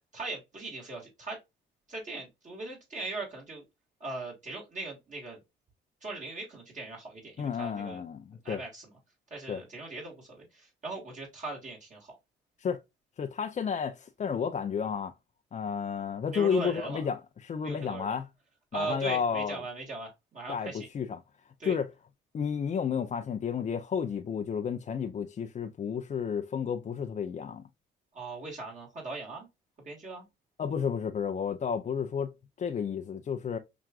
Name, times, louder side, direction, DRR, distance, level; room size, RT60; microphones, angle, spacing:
voice 1, 0.1-1.4 1.9-3.6 4.0-5.4 6.0-8.0 8.4-8.9 9.3-12.2 16.3-17.0 17.6-18.2 18.7-20.9 21.6-21.8 28.1-29.5 29.9-30.3, right 3 dB, 40° right, 1.8 m, -39 dB
voice 2, 7.4-8.6 9.5-9.6 12.6-12.8 13.2-15.1 15.5-18.3 18.7-19.6 20.5-21.2 21.6-21.9 22.3-27.7 30.6-33.6, left 7 dB, 35° left, 0.4 m, -32 dB
5.8 x 2.4 x 2.3 m
cardioid pair, 90°, 20 cm